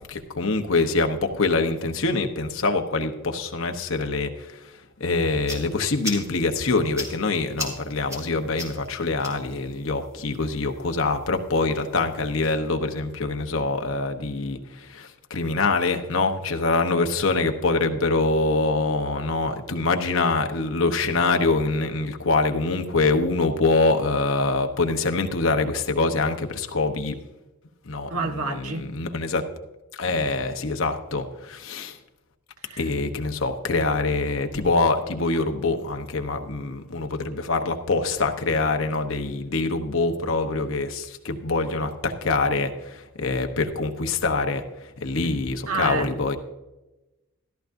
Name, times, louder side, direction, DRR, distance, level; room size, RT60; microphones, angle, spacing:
voice 1, 0.1-4.7 5.0-27.2 27.9-29.4 29.9-32.0 32.8-44.6 45.0-46.4, left 3 dB, 60° left, 5 dB, 1.0 m, -24 dB
sound 1, 5.1-12.5, left 1 dB, 15° right, 2.4 m, -40 dB
voice 2, 28.1-28.9 32.7-32.8 45.7-46.1, right 3 dB, 90° right, 4 dB, 1.3 m, -28 dB
14.0 x 13.0 x 2.6 m, 1.0 s
head